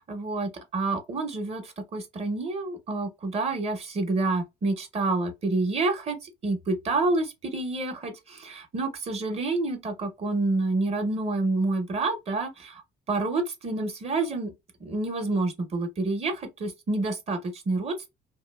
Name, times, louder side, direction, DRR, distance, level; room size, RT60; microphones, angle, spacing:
voice 1, 0.1-6.2 6.4-12.8 13.1-14.5 14.8-18.1, right 3 dB, 35° right, 0.8 m, -28 dB
2.8 x 2.3 x 2.3 m
cardioid pair, 110°, 17 cm